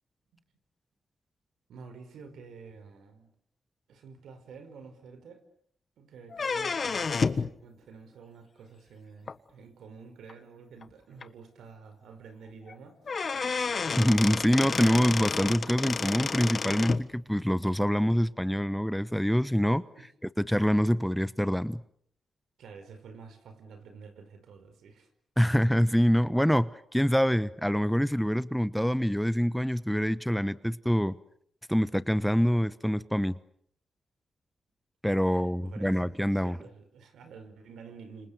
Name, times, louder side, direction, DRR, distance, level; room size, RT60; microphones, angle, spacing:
voice 1, 1.7-3.3 3.9-5.5 6.0-13.3 19.9-20.1 22.6-25.1 35.2-36.0 36.2-38.3, right 5 dB, 90° right, 5.1 m, -49 dB
sound 1, 6.3-7.5 9.3-9.4 10.3-10.4 10.8-10.9 11.2-11.3 12.7-12.8 13.1-17.0, left 5 dB, 45° left, 1.4 m, -30 dB
voice 2, 14.0-19.8 20.4-21.8 25.4-31.2 31.7-33.4 35.0-36.6, equal, ahead, 1.1 m, -25 dB
30.0 x 27.0 x 6.8 m
cardioid pair, 75°, 0 cm